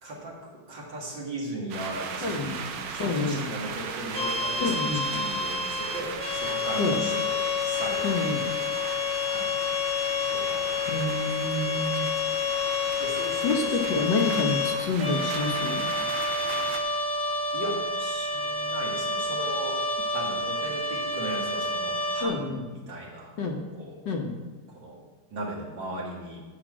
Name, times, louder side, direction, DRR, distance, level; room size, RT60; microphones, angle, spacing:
voice 1, 0.0-7.4 7.6-9.5 10.3-11.9 13.0-14.1 17.5-19.8 20.1-24.0 24.7-25.0 25.3-26.4, right 1 dB, 60° right, -3 dB, 3.0 m, -38 dB
sound 1, 1.7-16.8, right 6 dB, 75° right, 1.7 m, -37 dB
voice 2, 2.2-2.6 3.0-3.4 4.6-5.0 6.8-7.0 8.0-8.5 10.9-12.1 13.4-15.9 22.2-22.6 23.4-23.7 24.0-24.4, left 3 dB, 60° left, 2 dB, 1.7 m, -28 dB
Harmonium Samples - All Keys and Drones, 4.1-22.2, left 4 dB, 10° left, 0.4 m, -29 dB
11.5 x 5.1 x 7.5 m, 1.3 s
omnidirectional pair, 2.3 m